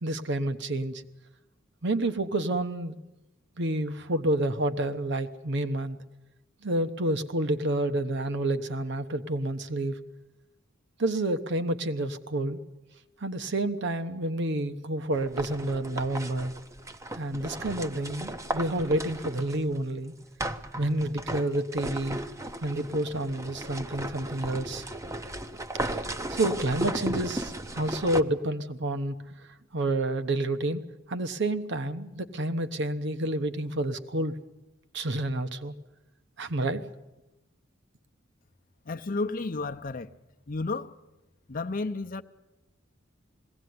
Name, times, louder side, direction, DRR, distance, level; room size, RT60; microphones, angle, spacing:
voice 1, 0.0-1.0 1.8-3.0 3.6-6.0 6.6-10.0 11.0-12.6 13.2-16.5 17.1-20.1 20.8-22.2 22.6-24.8 26.3-29.2 29.7-30.8 31.1-34.3 34.9-35.7 36.4-36.8, right 1 dB, 60° right, 1.1 m, -29 dB
sound 1, 15.1-19.8 20.4-28.2, right 1 dB, 15° right, 0.7 m, -35 dB
voice 2, 38.9-40.1 40.5-40.9 41.5-42.2, left 3 dB, 45° left, 0.7 m, -32 dB
21.0 x 17.0 x 9.5 m
head